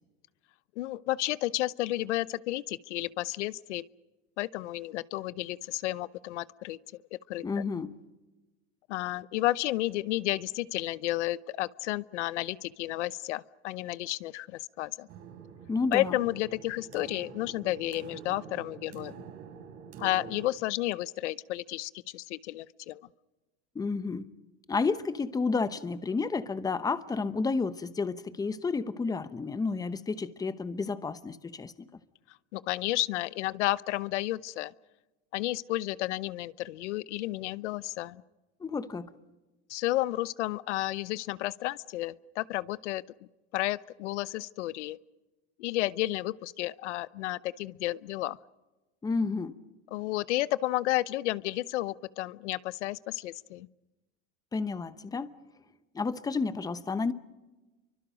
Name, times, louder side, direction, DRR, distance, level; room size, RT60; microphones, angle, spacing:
voice 1, 0.8-3.8 4.4-6.8 7.1-7.4 8.9-15.1 15.9-19.2 20.0-23.0 32.5-34.7 35.3-38.2 39.7-43.0 43.5-45.0 45.6-48.4 49.9-53.7, left 16 dB, 90° left, 0.8 m, -32 dB
voice 2, 7.4-7.9 15.7-16.2 23.7-24.3 24.7-31.9 38.6-39.1 49.0-49.5 54.5-55.3 55.9-57.1, left 4 dB, 10° left, 0.9 m, -31 dB
sound 1, 15.1-20.5, right 8 dB, 45° right, 3.9 m, -46 dB
30.0 x 24.5 x 5.1 m
supercardioid pair, 140°, 34 cm